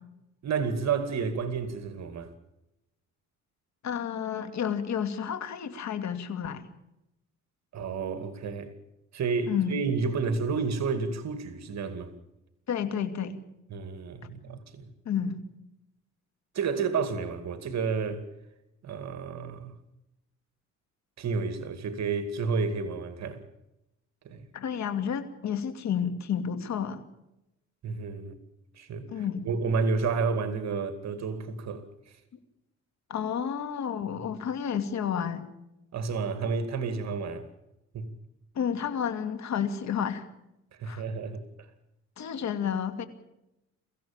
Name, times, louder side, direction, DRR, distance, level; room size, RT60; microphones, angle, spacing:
voice 1, 0.4-2.3 7.7-8.7 9.1-12.1 13.7-14.9 16.5-18.3 18.8-19.8 21.2-23.4 24.2-24.5 27.8-28.4 28.7-31.9 35.9-37.5 37.9-38.1 40.8-41.7, right 5 dB, 60° right, 2.3 m, -31 dB
voice 2, 3.8-6.6 9.5-9.8 12.7-13.4 15.1-15.4 24.5-27.0 29.1-29.5 33.1-35.5 38.6-40.3 40.8-41.0 42.2-43.1, left 8 dB, 65° left, 2.5 m, -31 dB
23.5 x 15.5 x 8.9 m
cardioid pair, 90°, 30 cm